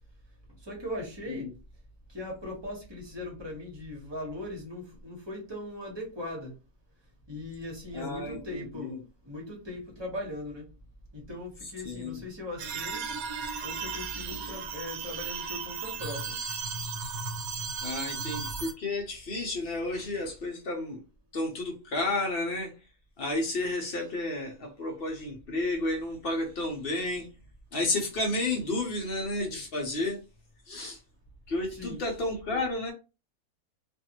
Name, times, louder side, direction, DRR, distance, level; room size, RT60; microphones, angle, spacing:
voice 1, 0.6-1.5 2.1-6.5 7.3-10.7 11.1-13.2 13.6-16.4 16.7-16.9 31.7-32.0, left 1 dB, 20° right, 1.0 m, -39 dB
voice 2, 7.9-9.0 11.8-12.2 17.8-21.0 21.3-22.7 23.2-27.3 27.7-30.2 30.7-31.0 31.5-32.9, left 2 dB, 50° left, 0.9 m, -31 dB
sound 1, 12.6-18.7, right 5 dB, 80° right, 1.0 m, -35 dB
2.5 x 2.5 x 2.9 m
omnidirectional pair, 1.5 m